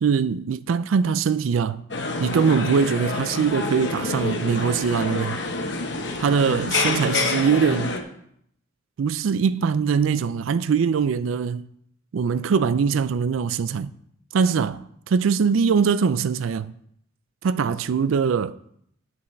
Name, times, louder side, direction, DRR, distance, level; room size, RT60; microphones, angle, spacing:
voice 1, 0.0-1.8 2.2-5.4 6.2-8.0 9.0-11.7 12.1-14.0 14.3-16.7 17.4-18.6, right 6 dB, 85° right, 0.4 m, -22 dB
sound 1, 1.9-8.0, left 3 dB, 60° left, 1.1 m, -27 dB
10.0 x 7.1 x 4.4 m
head